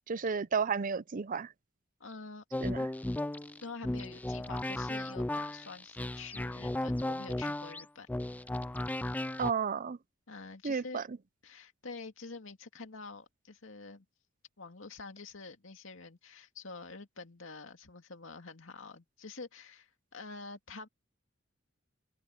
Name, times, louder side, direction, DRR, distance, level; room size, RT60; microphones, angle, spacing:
voice 1, 0.1-1.5 2.6-2.8 9.4-10.0 10.6-11.0, right 5 dB, 40° right, 0.6 m, -32 dB
voice 2, 2.0-2.4 3.6-8.1 8.4-8.6 10.3-11.1 11.4-14.1 14.6-20.9, left 4 dB, 70° left, 2.5 m, -47 dB
sound 1, 2.5-9.5, left 1 dB, 10° left, 0.3 m, -35 dB
head